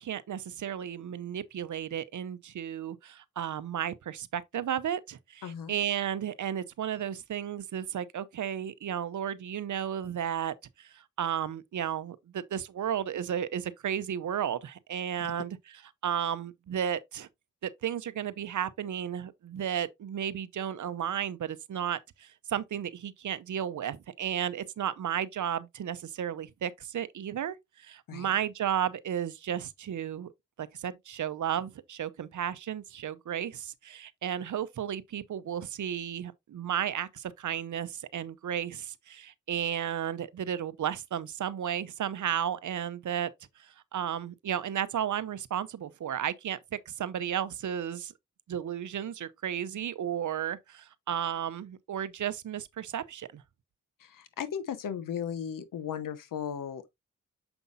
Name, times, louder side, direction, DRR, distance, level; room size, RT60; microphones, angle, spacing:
voice 1, 0.0-15.6 16.0-17.3 17.6-30.3 30.6-43.3 43.6-46.6 46.9-48.1 48.5-53.4, right 9 dB, 65° right, 0.7 m, -33 dB
voice 2, 5.4-5.7 28.1-28.3 54.0-56.9, left 8 dB, 85° left, 0.9 m, -36 dB
7.0 x 5.3 x 2.7 m
cardioid pair, 45°, 32 cm